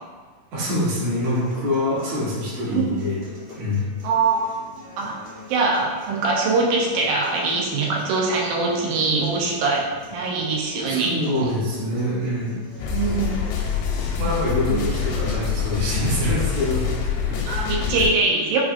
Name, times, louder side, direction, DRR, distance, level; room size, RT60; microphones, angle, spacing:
voice 1, 0.5-3.2 3.6-3.9 10.8-12.5 14.2-16.9 17.2-17.5 17.9-18.0, left 1 dB, 65° right, -9 dB, 2.2 m, -25 dB
sound 1, 1.0-17.0, left 2 dB, 45° right, 0.9 m, -43 dB
voice 2, 4.0-4.5 5.0-5.1 5.5-11.5 12.9-13.3 14.7-14.8 17.5-18.6, right 3 dB, 90° right, -1 dB, 2.3 m, -22 dB
sound 2, 12.8-18.1, left 7 dB, 85° left, 2.1 m, -25 dB
5.6 x 2.5 x 2.4 m, 1.5 s
omnidirectional pair, 3.7 m